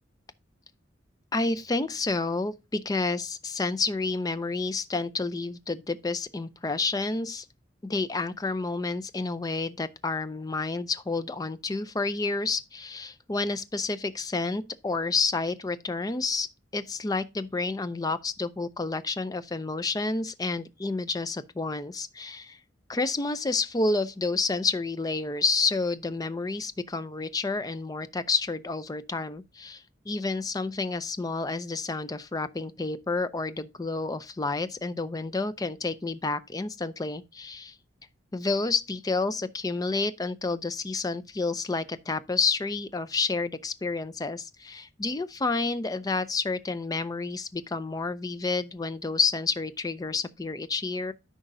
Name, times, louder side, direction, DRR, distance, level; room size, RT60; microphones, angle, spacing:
voice 1, 1.3-7.5 7.8-16.5 16.7-22.6 22.9-37.8 38.3-51.1, left 3 dB, 20° left, 0.4 m, -29 dB
12.5 x 5.1 x 2.6 m
head